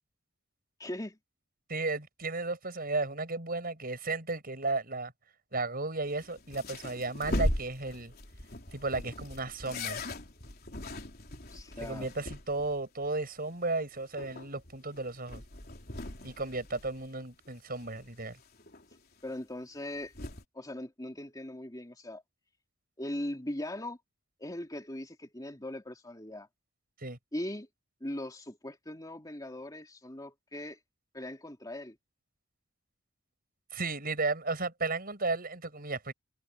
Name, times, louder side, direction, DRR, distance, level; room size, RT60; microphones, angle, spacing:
voice 1, 0.8-1.2 11.5-12.1 19.2-20.1 20.5-22.2 23.0-24.0 24.4-26.5 27.3-27.7 28.0-30.8 31.1-32.0, left 1 dB, 20° left, 2.9 m, -40 dB
voice 2, 1.7-5.1 5.5-8.1 8.7-10.0 11.8-15.4 16.2-18.4 27.0-27.2 33.7-36.1, right 3 dB, 45° right, 7.4 m, -34 dB
sound 1, 6.1-12.8 13.0-13.1 13.5-13.6 14.0-17.5 17.8-19.0 19.8-20.4, left 1 dB, 50° left, 3.8 m, -39 dB
head